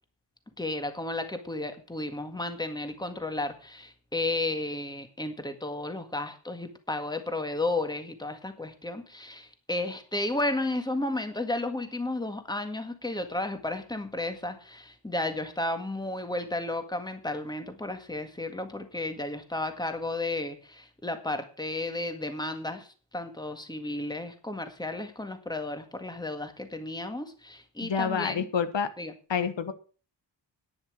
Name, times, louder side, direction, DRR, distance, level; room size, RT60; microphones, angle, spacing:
voice 1, 0.6-22.9 23.1-28.5 29.0-29.1, left 2 dB, 10° left, 7 dB, 1.8 m, -33 dB
voice 2, 27.8-28.9 29.3-29.7, left 6 dB, 80° left, 11 dB, 1.2 m, -28 dB
10.5 x 10.0 x 6.3 m, 0.38 s
wide cardioid pair, 130°, 43 cm